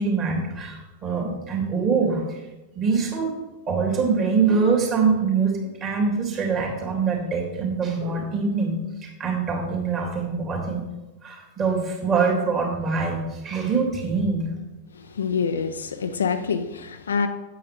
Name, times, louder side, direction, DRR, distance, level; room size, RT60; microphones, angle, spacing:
voice 1, 0.0-2.2 2.7-3.3 3.7-10.8 11.2-14.5, right 5 dB, 30° right, -1 dB, 2.9 m, -24 dB
voice 2, 14.9-17.3, left 6 dB, 70° left, 9 dB, 0.6 m, -26 dB
8.7 x 8.5 x 3.5 m, 1.1 s
figure-of-eight pair, 90°, 0 cm